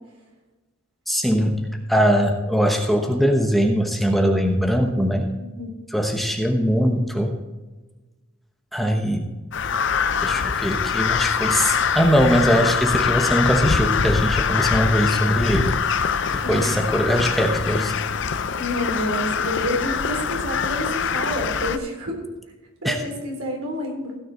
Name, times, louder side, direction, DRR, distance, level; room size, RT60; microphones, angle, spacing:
voice 1, 1.1-5.3 5.9-7.3 8.7-9.3 10.2-15.8 16.3-18.0 22.8-23.0, equal, ahead, 2 dB, 1.0 m, -21 dB
voice 2, 5.4-5.7 16.4-16.7 18.6-22.2 22.8-24.2, left 1 dB, 80° right, 0 dB, 3.8 m, -28 dB
Crow, 9.5-21.8, left 6 dB, 55° left, 0.6 m, -23 dB
16.0 x 6.7 x 4.3 m, 1.2 s
head